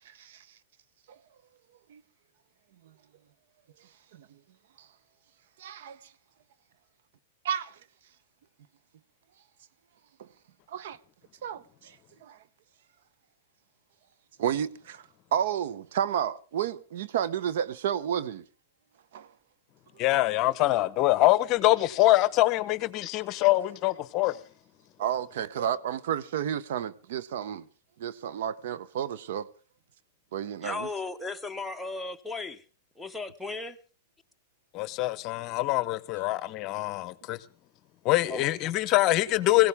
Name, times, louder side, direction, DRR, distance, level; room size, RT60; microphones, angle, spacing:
voice 1, 5.6-6.0 7.4-7.8 10.2-10.3 10.7-11.0 11.4-11.9 12.2-12.4 14.4-15.0 15.3-18.4 19.1-19.3 25.0-27.7 28.0-29.5 30.3-30.9, right 9 dB, 65° right, 0.8 m, -31 dB
voice 2, 20.0-24.4 34.7-37.4 38.0-39.7, left 17 dB, 40° left, 0.9 m, -24 dB
voice 3, 30.6-32.6 33.0-33.8 38.3-38.5, left 3 dB, 5° left, 1.1 m, -36 dB
20.0 x 16.5 x 3.5 m
hypercardioid pair, 130°, 0 cm